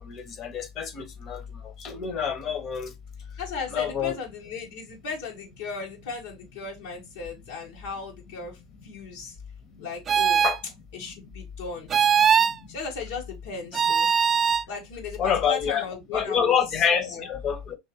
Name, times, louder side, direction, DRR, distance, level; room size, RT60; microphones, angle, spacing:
voice 1, 0.0-1.4 1.8-2.9 3.7-4.1 10.4-10.6 15.2-15.8 16.1-17.8, left 7 dB, 40° left, 1.3 m, -26 dB
voice 2, 3.4-8.6 8.8-9.3 9.8-10.5 10.9-11.9 12.7-14.1 14.4-17.3, left 5 dB, 75° left, 1.7 m, -36 dB
sound 1, 10.1-10.6 11.9-12.6 13.7-14.6, right 7 dB, 30° right, 0.4 m, -20 dB
4.6 x 3.0 x 2.9 m
hypercardioid pair, 95°, 0 cm